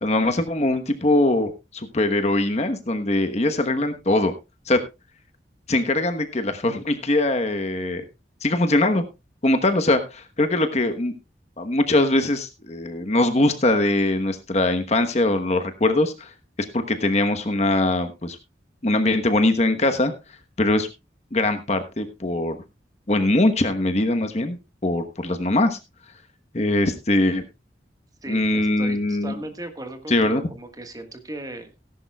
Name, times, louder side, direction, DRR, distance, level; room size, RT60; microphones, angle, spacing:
voice 1, 0.0-4.3 4.7-4.8 5.7-8.0 8.4-9.0 9.4-11.1 11.6-16.3 16.7-18.4 18.8-20.1 20.6-20.9 21.3-22.6 23.1-25.8 26.5-27.4 28.3-29.4 30.1-30.4, left 2 dB, 40° left, 7 dB, 1.1 m, -22 dB
voice 2, 28.2-31.7, right 1 dB, 20° right, 7 dB, 1.5 m, -37 dB
17.5 x 11.0 x 2.3 m, 0.26 s
head